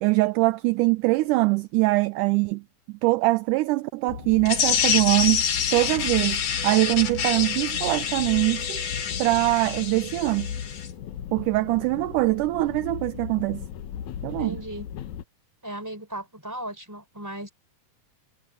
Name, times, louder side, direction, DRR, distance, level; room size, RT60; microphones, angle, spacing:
voice 1, 0.0-5.4 5.7-8.8 9.2-10.5 11.3-13.7 14.2-14.6, right 21 dB, 80° right, 1.9 m, -23 dB
sound 1, 4.1-15.2, left 9 dB, 65° left, 2.1 m, -37 dB
sound 2, 4.5-10.9, left 8 dB, 90° left, 4.3 m, -27 dB
sound 3, 6.5-12.7, right 10 dB, 45° right, 6.1 m, -47 dB
voice 2, 14.2-14.9 15.6-17.5, right 1 dB, 5° right, 4.3 m, -36 dB
omnidirectional pair, 4.0 m